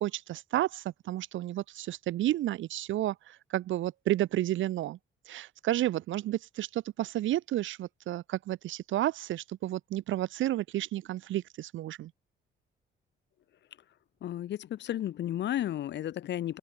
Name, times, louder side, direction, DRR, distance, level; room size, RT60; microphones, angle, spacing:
voice 1, 0.0-5.0 5.3-12.1, right 14 dB, 75° right, 0.9 m, -31 dB
voice 2, 14.2-16.6, left 12 dB, 65° left, 0.8 m, -33 dB
open air
cardioid pair, 90°, 20 cm